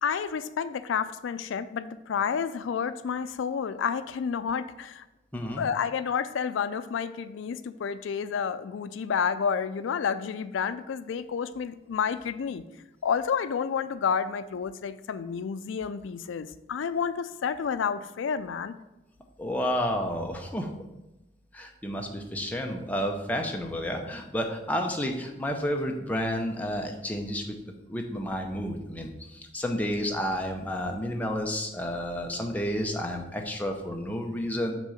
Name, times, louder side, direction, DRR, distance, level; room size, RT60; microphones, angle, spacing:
voice 1, 0.0-5.0 5.6-12.6 13.0-18.7, left 6 dB, 80° left, 14 dB, 0.3 m, -30 dB
voice 2, 5.3-5.6 19.4-20.7 21.5-27.4 27.9-34.7, equal, 10° left, 1 dB, 0.6 m, -31 dB
6.0 x 3.7 x 5.6 m, 0.97 s
head